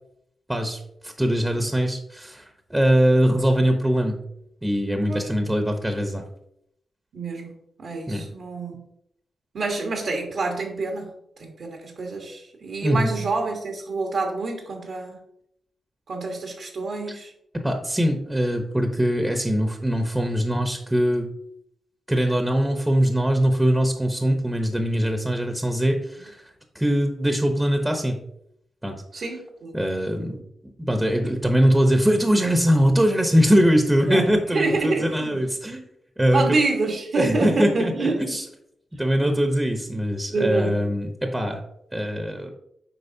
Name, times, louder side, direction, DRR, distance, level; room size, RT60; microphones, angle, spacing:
voice 1, 0.5-4.2 4.6-6.2 8.1-8.2 12.8-13.1 17.5-21.3 22.1-26.4 26.7-28.2 28.8-29.0 29.7-30.4 30.8-35.9 36.2-36.4 37.1-37.9 38.2-38.4 39.0-41.6 41.9-42.5, equal, 10° right, 4 dB, 1.0 m, -22 dB
voice 2, 7.1-7.5 7.8-8.8 9.5-11.1 11.4-15.2 16.1-17.3 29.1-29.8 34.1-35.4 36.3-38.1 40.3-40.8, right 3 dB, 75° right, 0 dB, 1.4 m, -27 dB
7.9 x 4.8 x 2.8 m, 0.75 s
cardioid pair, 55°, 0 cm